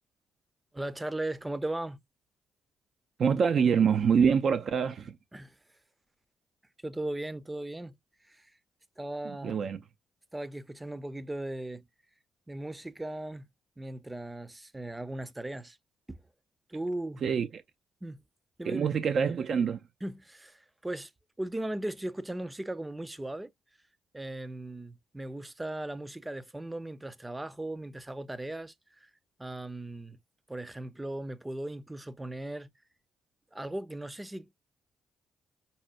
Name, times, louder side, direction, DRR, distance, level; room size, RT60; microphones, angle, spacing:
voice 1, 0.7-2.0 5.3-5.5 6.8-8.0 8.3-8.5 9.0-9.6 10.3-11.8 12.5-13.5 13.8-15.8 16.7-17.2 18.0-18.2 18.6-18.9 20.0-21.1 21.4-23.5 24.1-28.7 29.0-29.1 29.4-30.2 30.5-32.7 33.5-34.5, right 1 dB, 15° right, 0.6 m, -37 dB
voice 2, 3.2-5.1 9.3-9.8 17.2-17.5 18.7-19.8, right 6 dB, 60° right, 0.4 m, -25 dB
5.5 x 2.1 x 2.4 m
cardioid pair, 75°, 0 cm